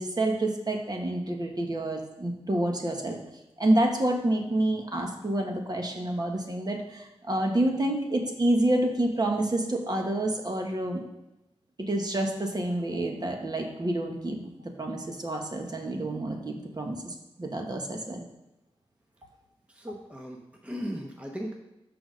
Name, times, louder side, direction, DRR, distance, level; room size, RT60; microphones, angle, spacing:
voice 1, 0.0-3.2 3.6-11.0 11.8-18.2, right 1 dB, 40° right, 2 dB, 1.3 m, -28 dB
voice 2, 19.7-21.6, equal, 10° right, 0 dB, 0.9 m, -37 dB
6.2 x 4.9 x 6.4 m, 0.95 s
wide cardioid pair, 70°, 11 cm